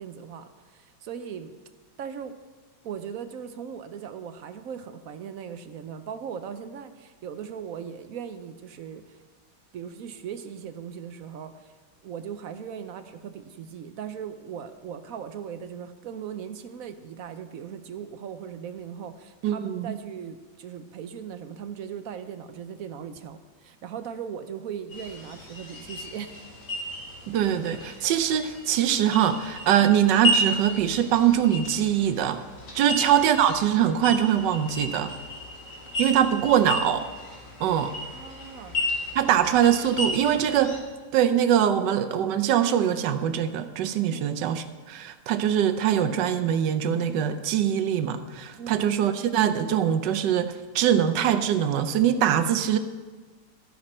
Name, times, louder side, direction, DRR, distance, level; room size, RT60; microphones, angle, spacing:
voice 1, 0.0-1.5 2.0-2.3 2.8-9.2 9.7-11.7 12.0-26.4 32.8-33.0 38.1-38.9 44.1-44.2 48.6-48.9, right 8 dB, 65° right, 9 dB, 1.0 m, -38 dB
voice 2, 19.4-20.0 27.3-32.4 32.7-35.1 36.0-37.1 37.6-37.9 39.1-40.7 41.1-52.8, right 10 dB, 85° right, 10 dB, 1.3 m, -23 dB
sound 1, 24.9-40.8, equal, 75° left, 3.0 m, -33 dB
13.5 x 10.0 x 4.3 m, 1.4 s
omnidirectional pair, 1.8 m